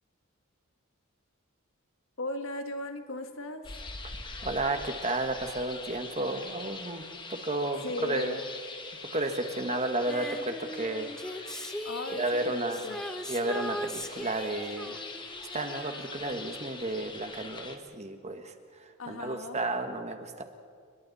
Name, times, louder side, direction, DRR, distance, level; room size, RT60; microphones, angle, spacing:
voice 1, 2.2-3.7 7.8-8.4 11.8-13.0 19.0-19.6, left 2 dB, 70° left, 6 dB, 1.6 m, -37 dB
sound 1, 3.6-17.8, left 3 dB, 25° left, 1.5 m, -43 dB
voice 2, 4.4-7.0 7.3-8.4 9.1-11.7 12.1-12.9 13.3-15.0 15.5-18.5 18.8-20.4, right 2 dB, 35° right, 6 dB, 1.5 m, -32 dB
Female singing, 10.1-16.7 17.0-17.1, equal, 5° left, 1.0 m, -40 dB
29.5 x 21.5 x 4.2 m, 2.1 s
head